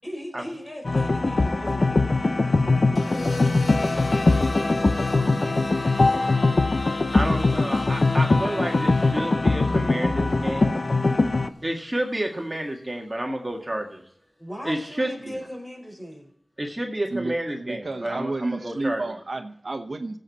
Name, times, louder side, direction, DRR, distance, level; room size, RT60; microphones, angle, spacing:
voice 1, 0.0-5.5 14.4-16.3, equal, 25° left, 1 dB, 4.9 m, -39 dB
sound 1, 0.8-11.5, left 3 dB, 60° left, 0.8 m, -21 dB
sound 2, 2.9-11.1 12.3-12.7, left 2 dB, 80° left, 1.7 m, -40 dB
voice 2, 7.1-10.8 11.6-14.0 14.6-15.1 16.6-19.0, right 1 dB, 20° right, 1 dB, 1.8 m, -30 dB
voice 3, 17.1-20.2, right 2 dB, 65° right, 6 dB, 1.0 m, -31 dB
17.0 x 8.1 x 4.2 m, 0.66 s
wide cardioid pair, 65°, 0 cm